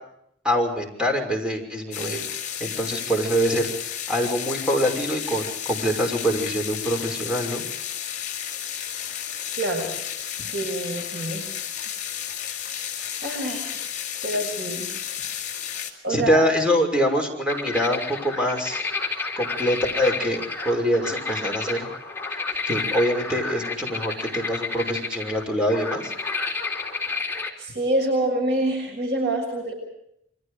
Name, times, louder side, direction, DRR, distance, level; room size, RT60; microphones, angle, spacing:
voice 1, 0.4-2.2 2.6-7.6 16.1-18.8 19.4-21.9 22.7-26.1, equal, 5° right, 3 dB, 5.9 m, -24 dB
sound 1, 1.9-15.9, left 9 dB, 45° left, 4.5 m, -32 dB
voice 2, 9.6-9.9 10.5-11.5 13.2-13.8 14.2-14.9 16.0-16.5 27.6-29.7, right 1 dB, 65° right, 2 dB, 6.7 m, -26 dB
sound 2, 17.5-27.5, left 4 dB, 15° left, 4.0 m, -30 dB
29.0 x 24.0 x 5.0 m, 0.77 s
head